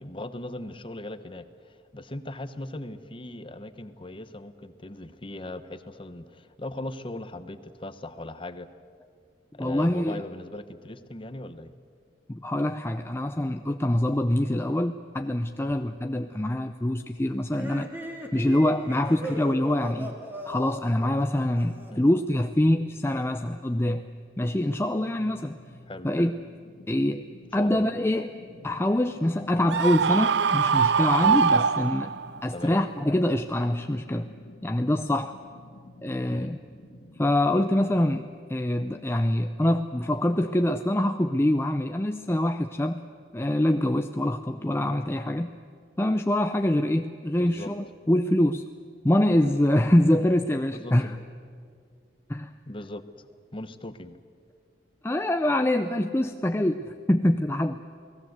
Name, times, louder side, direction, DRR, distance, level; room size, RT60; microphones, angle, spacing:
voice 1, 0.0-8.7 9.5-11.7 21.9-22.1 25.9-26.1 27.6-27.8 32.5-32.8 36.3-36.5 47.4-47.7 50.7-51.2 52.7-53.0 53.5-54.2, left 1 dB, 30° left, 11 dB, 1.1 m, -39 dB
voice 2, 9.6-10.2 12.3-17.9 18.3-20.1 20.5-24.1 24.4-25.6 26.0-26.4 26.9-27.2 27.5-28.4 28.6-32.1 32.4-34.3 34.6-35.4 36.0-36.6 37.2-43.0 43.3-45.5 46.0-48.6 49.0-51.2 52.3-52.5 55.0-57.8, left 1 dB, 15° left, 6 dB, 0.6 m, -25 dB
sound 1, 17.5-22.1, equal, 10° right, 2.8 m, -38 dB
sound 2, 25.2-38.2, left 1 dB, 65° left, 2.0 m, -50 dB
Screaming, 29.7-32.4, right 6 dB, 80° right, 0.5 m, -23 dB
29.0 x 19.0 x 8.0 m, 2.1 s
head